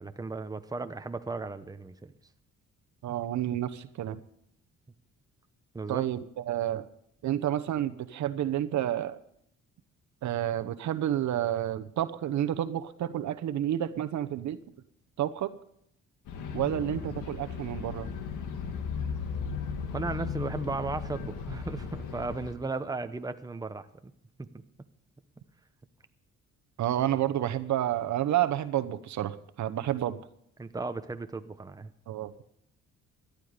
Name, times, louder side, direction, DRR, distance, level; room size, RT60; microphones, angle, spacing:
voice 1, 0.0-2.1 5.7-6.1 19.9-24.1 30.6-31.9, right 3 dB, 10° right, 9 dB, 0.9 m, -35 dB
voice 2, 3.0-4.2 5.9-6.9 7.2-9.2 10.2-14.6 15.2-15.5 16.5-18.1 26.8-30.2 32.1-32.3, right 12 dB, 70° right, 11 dB, 0.9 m, -30 dB
sound 1, 16.3-22.5, left 6 dB, 85° left, 1.9 m, -36 dB
17.5 x 12.0 x 5.1 m, 0.72 s
cardioid pair, 90°, 30 cm